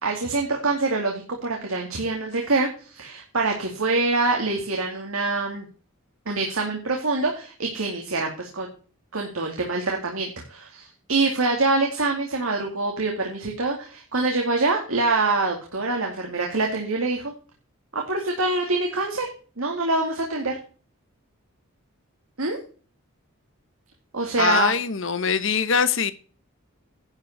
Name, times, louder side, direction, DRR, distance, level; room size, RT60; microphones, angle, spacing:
voice 1, 0.0-5.7 6.3-8.7 9.1-17.3 17.9-19.3 19.6-20.6 22.4-22.6 24.1-24.7, right 3 dB, 80° right, 2.3 m, -25 dB
voice 2, 24.4-26.1, left 6 dB, 60° left, 1.1 m, -22 dB
11.0 x 5.2 x 6.6 m
head